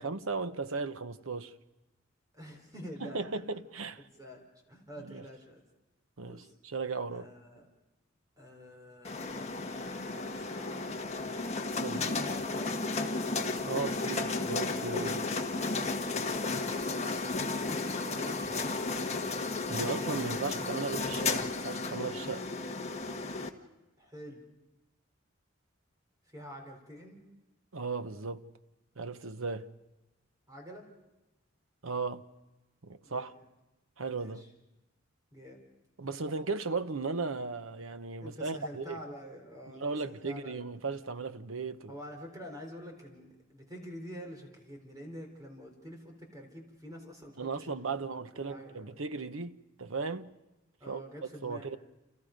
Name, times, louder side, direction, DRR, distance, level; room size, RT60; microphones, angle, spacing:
voice 1, 0.0-1.5 3.0-4.0 5.0-5.2 6.2-7.3 11.8-12.0 13.6-15.2 19.7-22.5 27.7-28.5 29.0-29.7 31.8-32.3 32.8-33.3 34.0-34.4 36.0-39.0 39.7-41.9 47.4-50.4 50.9-51.0 51.4-51.8, right 4 dB, 85° right, 1.0 m, -36 dB
voice 2, 2.3-3.4 4.0-5.6 6.2-6.6 7.1-7.7 8.4-9.8 10.3-11.1 11.9-13.0 16.5-16.8 17.3-18.9 24.0-24.4 26.3-27.2 30.5-30.9 33.0-33.4 34.1-34.5 35.3-35.6 38.2-40.6 41.9-48.9 50.8-51.8, equal, 20° right, 4.0 m, -47 dB
sound 1, 9.0-23.5, left 3 dB, 35° left, 1.5 m, -33 dB
29.0 x 29.0 x 5.2 m
head